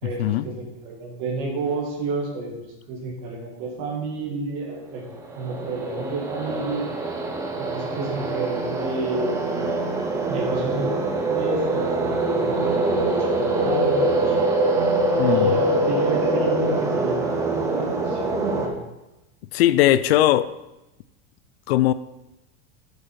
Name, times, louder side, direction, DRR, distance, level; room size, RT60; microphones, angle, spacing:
voice 1, 0.0-5.0 5.3-6.9 7.6-9.6 10.3-14.3 15.2-18.8, right 3 dB, 40° right, 0 dB, 2.2 m, -30 dB
sound 1, 5.1-18.7, right 2 dB, 10° right, 0.6 m, -24 dB
voice 2, 15.2-15.6 19.5-20.5 21.7-21.9, left 14 dB, 75° left, 15 dB, 0.5 m, -19 dB
7.8 x 7.5 x 4.6 m, 0.97 s
supercardioid pair, 180°, 31 cm